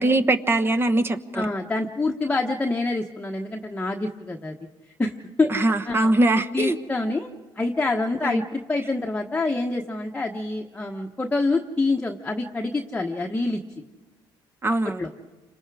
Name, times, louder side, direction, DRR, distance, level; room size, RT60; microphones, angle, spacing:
voice 1, 0.0-1.4 5.5-6.8 8.2-8.4 14.6-15.0, right 2 dB, 25° right, 8 dB, 1.2 m, -22 dB
voice 2, 1.3-4.6 5.0-5.5 5.9-6.1 6.5-7.3 7.6-13.6 15.0-15.1, left 3 dB, 15° left, 1 dB, 1.2 m, -26 dB
29.5 x 25.5 x 4.9 m, 1.3 s
cardioid pair, 110°, 9 cm